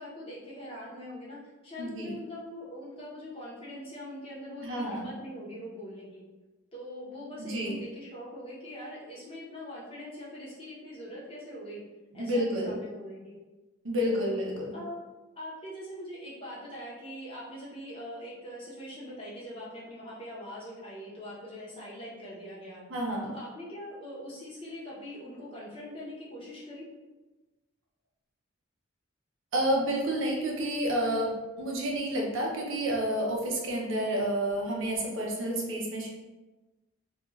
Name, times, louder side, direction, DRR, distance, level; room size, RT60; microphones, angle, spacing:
voice 1, 0.0-1.4 1.6-6.2 6.7-11.8 12.1-13.4 14.1-14.4 14.7-15.0 15.4-22.8 23.2-26.9, equal, 25° left, -7 dB, 0.7 m, -42 dB
voice 2, 1.8-2.1 4.6-5.1 7.4-7.8 12.1-12.8 13.8-14.8 22.9-23.3 29.5-36.1, right 1 dB, 65° right, -2 dB, 0.6 m, -30 dB
2.4 x 2.3 x 3.0 m, 1.2 s
head